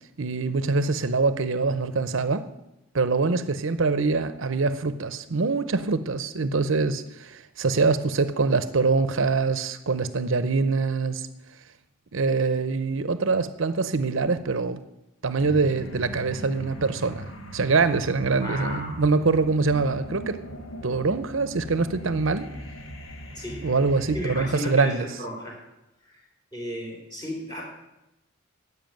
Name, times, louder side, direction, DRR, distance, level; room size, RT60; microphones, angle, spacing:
voice 1, 0.2-2.5 2.9-11.3 12.1-14.8 15.2-17.3 17.5-20.4 20.8-22.5 23.6-25.1, right 4 dB, 70° right, 13 dB, 0.7 m, -24 dB
sound 1, 15.4-24.5, equal, 80° left, 1.5 m, -40 dB
voice 2, 18.4-19.0 23.3-23.6 24.1-25.6 26.0-26.2 26.5-27.6, equal, 20° left, -1 dB, 3.7 m, -34 dB
10.5 x 8.0 x 9.0 m, 0.92 s
head